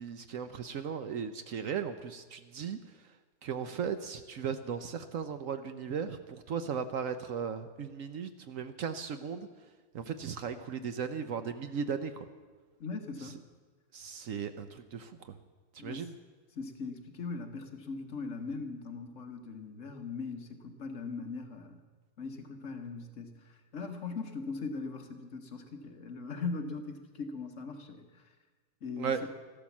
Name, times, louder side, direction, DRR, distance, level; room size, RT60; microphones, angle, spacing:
voice 1, 0.0-2.8 3.4-9.5 9.9-12.3 13.9-15.1 15.7-16.1 29.0-29.3, right 6 dB, 65° right, 10 dB, 1.0 m, -36 dB
voice 2, 12.8-13.4 15.8-16.1 16.6-21.8 22.2-28.2 28.8-29.3, left 4 dB, 55° left, 5 dB, 1.5 m, -40 dB
14.0 x 12.0 x 7.2 m, 1.4 s
omnidirectional pair, 1.7 m